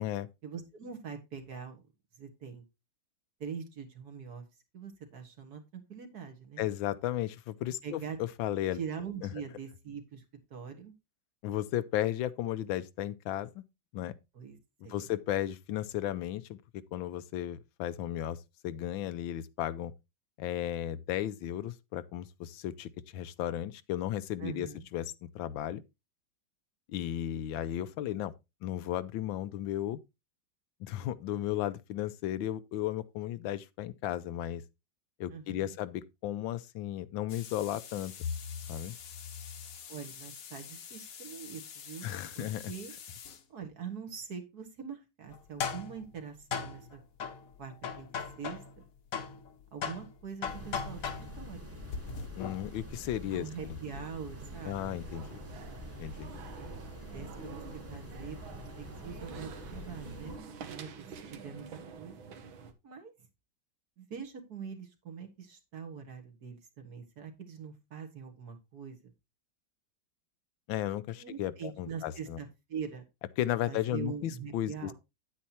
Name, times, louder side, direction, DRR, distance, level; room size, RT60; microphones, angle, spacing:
voice 1, 0.4-1.8 2.1-2.6 3.4-4.5 4.7-6.7 7.8-8.2 8.7-10.2 10.5-10.9 14.3-15.1 24.4-24.9 35.3-35.8 39.9-42.9 43.5-47.0 47.6-48.1 48.4-48.9 49.7-51.7 53.3-54.9 57.0-60.3 60.6-62.2 62.8-63.1 64.0-69.1 71.1-73.0 73.7-74.9, right 6 dB, 55° right, 2.0 m, -43 dB
voice 2, 6.6-8.8 11.4-13.6 13.9-14.1 14.9-19.9 20.4-24.7 24.9-25.8 26.9-28.3 28.6-30.0 30.8-34.6 35.2-38.1 38.7-38.9 42.0-42.7 52.4-53.5 54.6-55.4 56.0-56.3 70.7-72.4 73.4-74.9, left 12 dB, 80° left, 1.4 m, -34 dB
sound 1, 37.3-43.4 45.3-48.8 49.1-52.8, left 6 dB, 55° left, 1.2 m, -41 dB
sound 2, 50.4-60.4, left 1 dB, 10° right, 1.3 m, -46 dB
sound 3, 54.4-62.7, right 6 dB, 80° right, 1.9 m, -48 dB
9.3 x 8.7 x 2.8 m
omnidirectional pair, 2.1 m